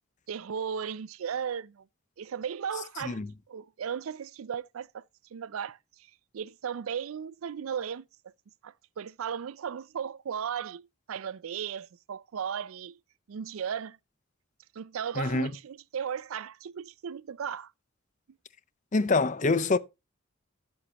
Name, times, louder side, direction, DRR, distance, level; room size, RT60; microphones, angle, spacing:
voice 1, 0.3-1.8 2.2-3.2 3.5-5.0 5.3-5.8 6.3-8.3 8.6-12.9 13.3-14.0 14.7-17.7, right 7 dB, 75° right, 0.4 m, -36 dB
voice 2, 15.2-15.5 18.9-19.8, left 3 dB, 35° left, 0.6 m, -25 dB
12.5 x 8.1 x 2.9 m
head